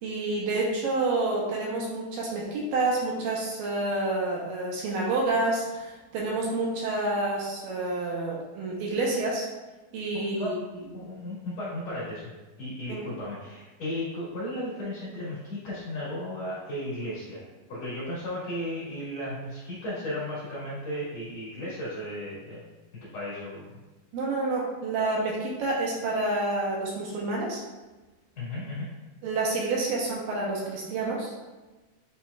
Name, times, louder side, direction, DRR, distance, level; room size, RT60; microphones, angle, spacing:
voice 1, 0.0-9.5 9.9-10.5 12.9-13.1 24.1-27.6 29.2-31.3, right 2 dB, 75° right, -3 dB, 2.3 m, -28 dB
voice 2, 10.1-10.6 10.9-12.3 12.6-17.4 17.7-22.6 23.1-23.8 28.4-28.9, left 1 dB, 55° left, -9 dB, 2.0 m, -35 dB
8.1 x 2.9 x 2.2 m, 1.2 s
omnidirectional pair, 4.4 m